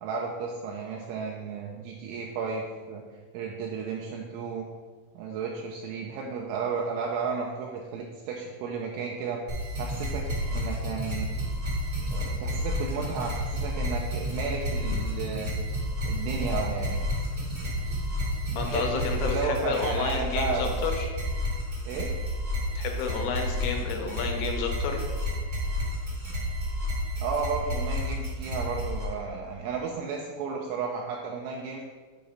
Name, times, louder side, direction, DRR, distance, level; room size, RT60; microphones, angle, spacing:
voice 1, 0.0-3.0 3.3-4.7 5.2-9.4 9.8-11.3 12.1-15.5 16.0-17.0 18.5-20.9 21.9-22.1 27.2-31.8, right 5 dB, 80° right, 0 dB, 2.8 m, -33 dB
sound 1, 9.5-29.0, left 1 dB, 65° right, 0.9 m, -31 dB
voice 2, 18.6-21.1 22.8-25.1, left 5 dB, 80° left, 3 dB, 3.2 m, -31 dB
7.8 x 3.9 x 5.1 m, 1.4 s
omnidirectional pair, 5.9 m